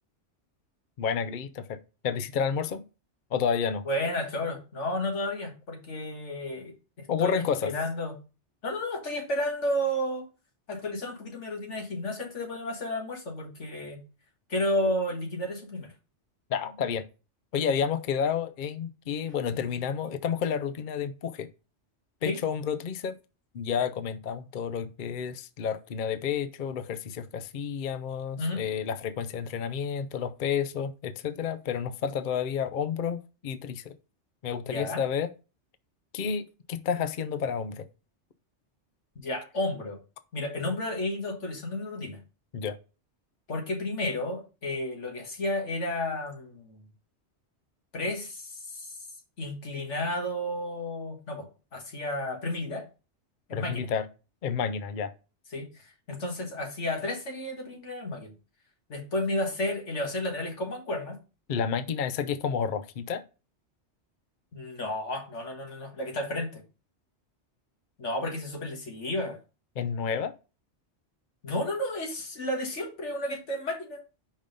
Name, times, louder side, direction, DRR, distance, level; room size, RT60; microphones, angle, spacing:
voice 1, 1.0-1.8 2.0-2.8 3.3-3.8 7.1-7.7 16.5-17.0 17.5-21.5 22.2-23.2 23.5-33.9 34.4-35.3 36.1-37.8 42.5-42.8 53.5-54.1 54.4-55.1 61.5-63.2 69.8-70.3, left 7 dB, 50° left, 0.7 m, -30 dB
voice 2, 3.9-8.2 8.6-10.3 10.7-14.0 14.5-15.9 22.3-22.4 28.4-28.6 34.7-35.0 39.2-40.0 40.3-42.2 43.5-46.9 47.9-49.1 49.4-52.9 53.5-53.9 55.5-58.3 58.9-61.2 64.5-66.6 68.0-69.4 71.4-74.0, left 1 dB, 90° left, 1.9 m, -32 dB
5.3 x 5.2 x 5.1 m
omnidirectional pair, 1.2 m